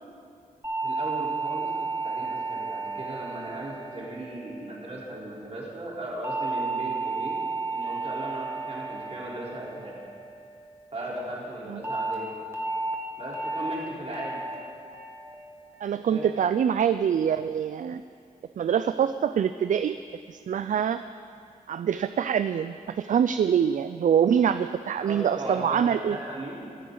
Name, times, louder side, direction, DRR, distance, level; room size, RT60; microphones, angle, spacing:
sound 1, 0.6-5.1 6.2-10.7 11.8-12.1 12.5-12.9 13.3-13.7 14.1-14.5 14.9-15.3 15.7-16.1, right 3 dB, 15° right, 1.7 m, -33 dB
voice 1, 0.8-7.4 7.7-10.0 10.9-12.3 13.2-14.4 16.0-16.2 25.0-26.8, right 1 dB, 45° right, -5 dB, 3.8 m, -37 dB
voice 2, 15.8-18.0 18.6-20.0 20.3-21.0 21.7-26.2, right 8 dB, 65° right, 12 dB, 0.4 m, -25 dB
24.0 x 9.3 x 3.9 m, 2.4 s
wide cardioid pair, 105°, 15 cm